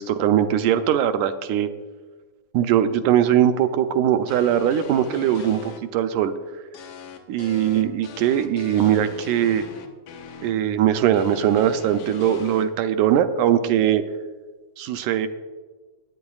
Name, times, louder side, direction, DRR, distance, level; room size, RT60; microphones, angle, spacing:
voice 1, 0.0-1.7 2.5-6.3 7.3-9.6 10.4-14.0 14.8-15.3, right 10 dB, 80° right, 9 dB, 1.9 m, -20 dB
sound 1, 4.3-5.8 6.7-10.5 11.1-12.6, left 6 dB, 80° left, 2.5 m, -40 dB
20.0 x 9.1 x 2.3 m, 1.3 s
omnidirectional pair, 3.7 m